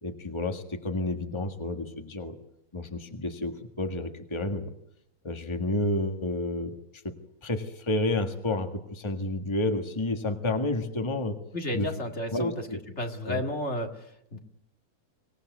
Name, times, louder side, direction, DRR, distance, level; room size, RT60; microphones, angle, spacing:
voice 1, 0.0-2.4 2.7-4.7 5.2-6.8 7.0-7.2 7.4-11.4 11.7-11.9 12.3-12.8 13.2-13.4, left 2 dB, 20° left, 5 dB, 1.8 m, -30 dB
voice 2, 11.5-12.7 13.0-14.4, left 1 dB, 50° left, 4 dB, 2.4 m, -32 dB
25.5 x 18.0 x 9.3 m, 0.78 s
omnidirectional pair, 1.6 m